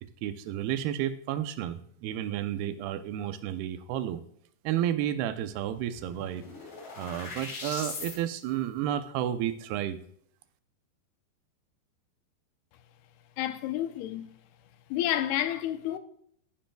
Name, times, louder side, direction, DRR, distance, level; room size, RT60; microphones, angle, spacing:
voice 1, 0.0-4.2 4.6-6.4 7.0-10.0, right 11 dB, 85° right, 2.7 m, -31 dB
sound 1, 5.3-5.4 5.7-8.2, left 3 dB, 65° left, 5.1 m, -40 dB
voice 2, 13.4-14.3 14.9-16.0, left 12 dB, 85° left, 2.7 m, -30 dB
14.5 x 11.5 x 2.3 m
omnidirectional pair, 4.4 m